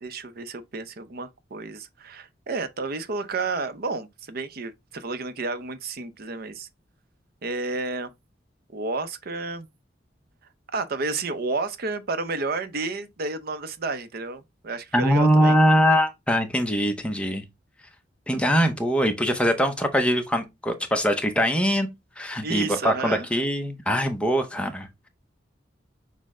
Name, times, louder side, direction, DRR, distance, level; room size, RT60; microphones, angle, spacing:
voice 1, 0.0-6.7 7.4-8.1 8.7-9.7 10.7-15.6 22.4-23.3, right 3 dB, 55° right, 0.6 m, -31 dB
voice 2, 14.9-17.4 18.3-21.9 22.2-25.1, equal, 5° left, 0.7 m, -22 dB
6.2 x 2.1 x 3.6 m
head